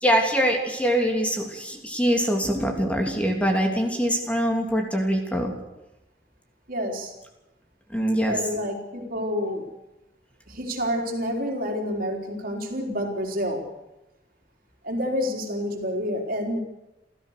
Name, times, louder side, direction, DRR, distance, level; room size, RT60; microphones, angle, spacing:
voice 1, 0.0-5.5 7.9-8.4, equal, 10° left, 2 dB, 3.0 m, -23 dB
voice 2, 6.7-7.1 8.2-9.6 10.5-13.7 14.8-16.6, equal, 55° right, 2 dB, 4.2 m, -28 dB
29.5 x 14.0 x 6.7 m, 0.96 s
head